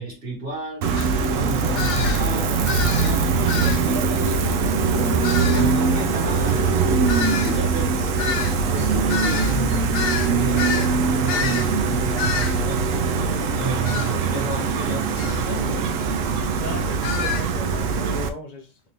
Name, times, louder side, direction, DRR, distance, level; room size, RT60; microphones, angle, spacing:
voice 1, 0.0-4.4 5.5-13.3 13.6-15.9, right 1 dB, 35° right, 1.5 m, -33 dB
Gull seagull, 0.8-18.3, right 5 dB, 90° right, 0.6 m, -22 dB
sound 1, 1.0-1.1 1.8-2.3 2.7-3.2 3.5-3.9 5.2-5.7 7.1-10.9 11.3-11.7 12.2-12.6 13.8-14.1 15.2-15.4 17.0-17.5, left 7 dB, 75° left, 1.1 m, -28 dB
voice 2, 13.9-14.6 16.6-18.8, left 2 dB, 55° left, 0.4 m, -36 dB
3.7 x 2.7 x 3.2 m
omnidirectional pair, 1.9 m